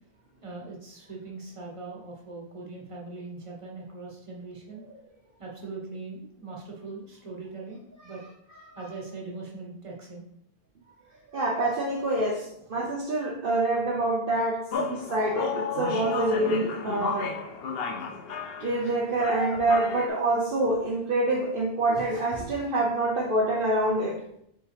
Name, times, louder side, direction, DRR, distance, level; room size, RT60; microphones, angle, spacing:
voice 1, 0.4-4.8 5.4-8.2 8.7-10.2, right 3 dB, 30° right, -3 dB, 1.4 m, -40 dB
voice 2, 11.3-17.3 18.6-24.2, right 2 dB, 60° right, -3 dB, 1.0 m, -26 dB
sound 1, 14.7-20.1, left 5 dB, 70° left, 0.9 m, -33 dB
5.5 x 5.4 x 3.4 m, 0.75 s
omnidirectional pair, 1.1 m